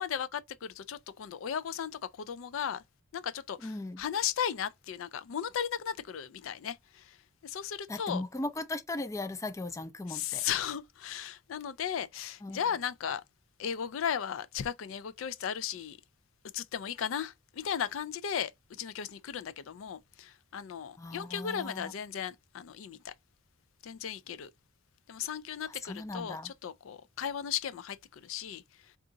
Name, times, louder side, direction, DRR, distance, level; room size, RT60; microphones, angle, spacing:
voice 1, 0.0-2.8 3.1-7.2 7.4-8.2 10.1-13.2 13.6-16.0 16.5-18.5 18.8-23.1 23.8-24.5 25.1-28.6, left 8 dB, 85° left, 0.4 m, -36 dB
voice 2, 3.6-4.0 7.9-10.4 12.4-12.6 21.0-21.9 25.7-26.5, left 2 dB, 15° left, 0.3 m, -38 dB
3.7 x 2.4 x 3.8 m
head